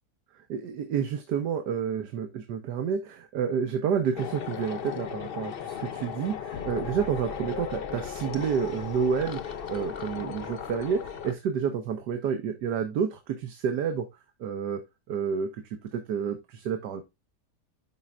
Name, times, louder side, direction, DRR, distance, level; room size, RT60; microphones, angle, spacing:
voice 1, 0.5-14.1 14.4-14.8 15.1-15.6 15.9-17.1, right 7 dB, 80° right, 7 dB, 1.4 m, -29 dB
sound 1, 4.2-11.3, left 8 dB, 60° left, 0.6 m, -36 dB
12.5 x 4.4 x 2.4 m, 0.22 s
omnidirectional pair, 1.8 m